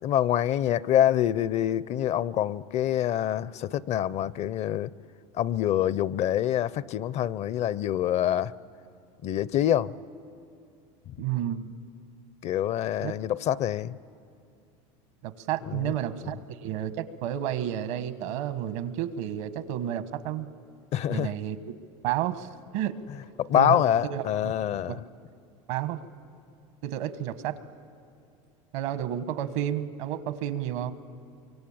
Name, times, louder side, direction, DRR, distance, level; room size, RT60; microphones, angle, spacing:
voice 1, 0.0-4.9 5.3-8.5 9.2-9.9 11.1-11.2 12.4-14.0 15.6-16.0 16.2-16.3 20.9-21.3 23.4-25.0, left 11 dB, 45° left, 0.6 m, -26 dB
voice 2, 11.2-11.7 13.0-13.1 15.2-20.5 21.1-21.6 22.0-23.0 23.5-23.8 24.1-24.5 24.9-25.0 25.7-26.0 26.8-27.5 28.7-30.9, right 11 dB, 75° right, 1.2 m, -31 dB
24.0 x 24.0 x 8.8 m
supercardioid pair, 105°, 16 cm